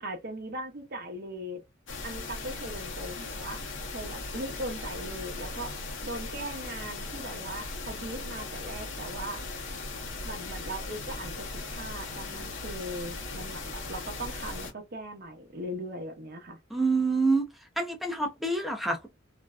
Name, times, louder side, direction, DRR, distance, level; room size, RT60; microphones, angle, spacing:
voice 1, 0.0-1.6 2.0-3.6 3.9-5.8 6.0-9.4 10.2-16.6, right 1 dB, 50° right, 0.7 m, -39 dB
sound 1, 1.9-14.7, left 3 dB, 75° left, 0.8 m, -38 dB
voice 2, 16.7-17.4 17.8-19.1, right 3 dB, ahead, 0.5 m, -26 dB
2.5 x 2.1 x 2.3 m
head